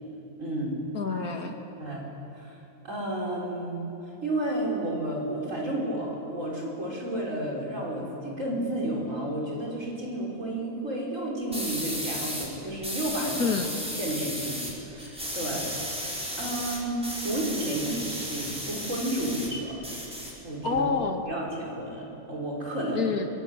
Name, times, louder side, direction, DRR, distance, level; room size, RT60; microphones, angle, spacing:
voice 1, 0.4-0.8 1.8-2.0 2.4-2.6 2.8-3.9 4.2-13.4 14.0-15.7 16.4-19.8 20.4-20.9 21.2-23.0, right 1 dB, 55° right, -3 dB, 5.7 m, -31 dB
voice 2, 0.9-1.6 13.3-13.8 20.6-21.2 23.0-23.3, left 5 dB, 70° left, 4 dB, 2.6 m, -28 dB
sound 1, 11.5-12.5 12.8-14.7 15.0-19.5 19.8-20.8, equal, 5° right, 5.2 m, -34 dB
26.0 x 22.5 x 8.2 m, 3.0 s
omnidirectional pair, 1.6 m